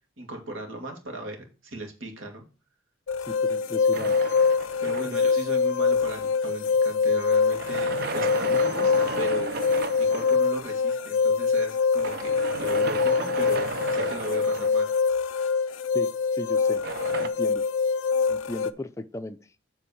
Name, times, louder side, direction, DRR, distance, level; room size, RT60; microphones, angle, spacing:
voice 1, 0.2-2.4 4.8-9.5 10.0-14.9, right 1 dB, 85° right, 3 dB, 2.0 m, -37 dB
sound 1, 3.1-18.7, left 5 dB, 75° left, 0.4 m, -24 dB
voice 2, 3.2-4.3 5.1-5.2 15.9-16.1 16.4-16.8 17.2-17.6 18.3-19.4, left 1 dB, 15° left, 9 dB, 0.5 m, -36 dB
sound 2, 3.9-5.5 7.3-10.5 12.0-15.2 16.7-17.3, right 4 dB, 50° right, 0.6 m, -34 dB
8.1 x 3.4 x 6.2 m, 0.34 s
head